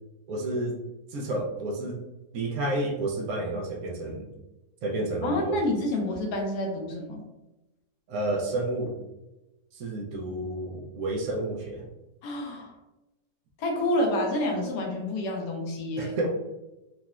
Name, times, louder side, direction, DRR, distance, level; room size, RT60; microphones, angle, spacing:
voice 1, 0.3-0.8 1.1-2.0 2.3-4.3 4.8-5.6 8.1-9.0 9.7-11.8 16.0-16.3, right 2 dB, 70° right, 0 dB, 1.0 m, -30 dB
voice 2, 5.2-7.2 12.2-12.8 13.6-16.1, left 1 dB, 75° left, 1 dB, 1.2 m, -28 dB
3.8 x 2.1 x 2.4 m, 1.0 s
omnidirectional pair, 1.8 m